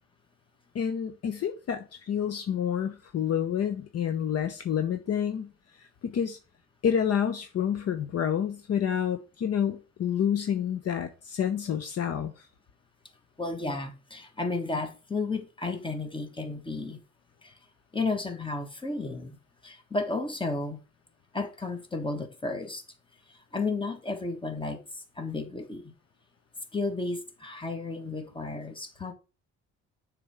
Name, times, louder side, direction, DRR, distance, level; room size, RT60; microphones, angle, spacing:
voice 1, 0.7-5.5 6.0-6.4 6.8-12.3, left 8 dB, 55° left, 0.8 m, -28 dB
voice 2, 13.4-17.0 17.4-17.5 17.9-19.4 19.6-20.8 21.3-22.8 23.3-25.9 26.7-29.1, left 3 dB, 15° left, 1.3 m, -33 dB
6.9 x 3.4 x 4.9 m
cardioid pair, 90°, 30 cm